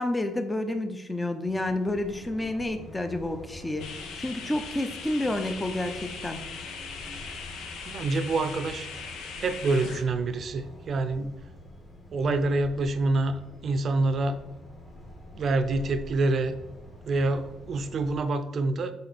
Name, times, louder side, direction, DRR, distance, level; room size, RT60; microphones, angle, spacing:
voice 1, 0.0-3.9 4.2-6.4, left 1 dB, 10° left, 8 dB, 0.6 m, -30 dB
sound 1, 1.4-18.2, left 1 dB, 30° left, 1.6 m, -46 dB
sound 2, 3.8-10.0, left 5 dB, 85° left, 0.9 m, -40 dB
voice 2, 7.9-8.9 9.4-11.3 12.1-14.4 15.3-16.5 17.1-18.9, right 2 dB, 45° right, 11 dB, 0.6 m, -27 dB
7.5 x 3.7 x 4.2 m, 0.99 s
cardioid pair, 125°, 0 cm